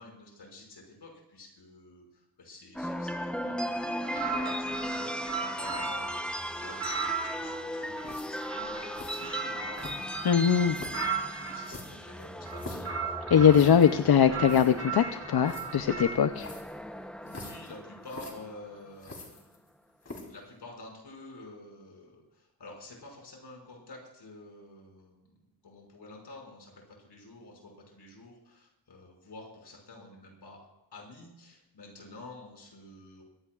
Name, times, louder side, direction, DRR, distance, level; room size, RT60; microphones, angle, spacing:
voice 1, 0.0-10.2 10.7-13.7 17.2-19.4 20.2-25.3 25.6-30.6 30.9-33.2, left 2 dB, 85° left, -1 dB, 5.9 m, -49 dB
sound 1, 2.7-18.9, equal, 5° left, 0.8 m, -37 dB
sound 2, 4.0-6.2 6.6-11.7 12.4-14.0 14.3-16.3, right 6 dB, 35° right, 1.3 m, -37 dB
sound 3, 8.0-8.5 8.9-9.2 9.7-10.2 10.7-11.1 11.6-12.9 13.5-13.9 14.2-14.3 14.4-14.7 15.4-15.6 16.4-16.7 17.3-17.7 18.0-18.3 19.0-19.7 20.0-20.4, left 2 dB, 40° left, 3.4 m, -44 dB
voice 2, 10.2-10.8 13.3-16.5, left 8 dB, 70° left, 9 dB, 0.7 m, -21 dB
24.0 x 17.0 x 2.4 m, 0.90 s
wide cardioid pair, 160°, 39 cm